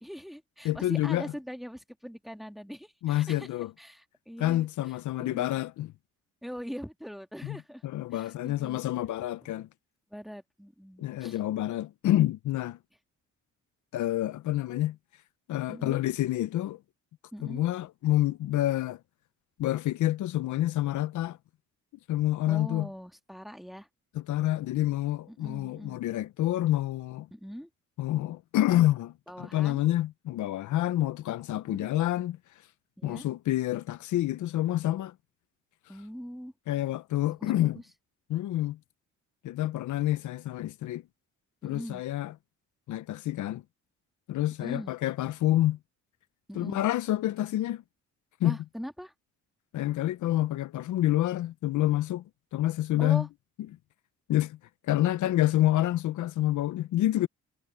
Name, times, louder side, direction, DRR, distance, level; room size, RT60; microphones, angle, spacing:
voice 1, 0.0-3.5 3.8-5.5 6.4-7.8 8.1-8.8 10.1-11.4 15.7-16.0 17.3-17.6 22.5-23.9 25.3-26.0 27.3-27.7 29.3-29.8 31.7-31.9 33.0-33.3 35.9-36.5 37.3-37.8 41.6-42.0 44.6-44.9 46.5-46.8 48.4-49.1 53.0-53.3, equal, ahead, 1.7 m, -42 dB
voice 2, 0.6-1.2 3.0-3.7 4.4-5.9 7.4-7.6 7.8-9.7 11.0-12.8 13.9-15.0 15.5-16.8 17.4-19.0 19.6-21.4 22.1-22.9 24.2-27.3 28.0-32.4 33.0-35.1 36.7-37.8 38.3-38.8 39.4-41.0 41.6-42.3 42.9-43.6 44.3-45.8 46.6-47.8 48.4-48.6 49.7-52.2 52.5-53.3 54.3-54.6 54.9-57.3, left 14 dB, 75° left, 0.8 m, -28 dB
cardioid pair, 90°, 30 cm